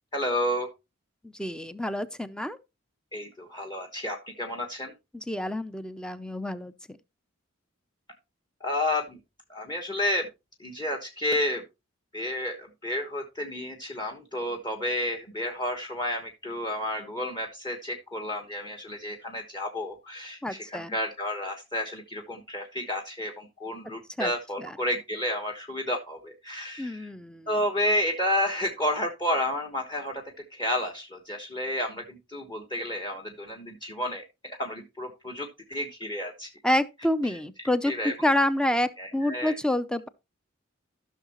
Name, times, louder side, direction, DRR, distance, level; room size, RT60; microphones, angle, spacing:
voice 1, 0.1-0.7 3.1-4.9 8.6-9.2 9.5-10.3 10.6-11.6 12.1-27.1 27.5-30.2 30.5-36.5 37.2-37.4 37.9-38.1 39.0-39.5, left 1 dB, 20° left, 1.3 m, -31 dB
voice 2, 1.2-2.6 5.1-7.0 20.4-21.0 24.2-24.3 24.6-24.7 26.8-27.5 36.6-37.9 38.2-40.1, left 1 dB, 5° left, 0.5 m, -28 dB
14.5 x 6.4 x 3.0 m
head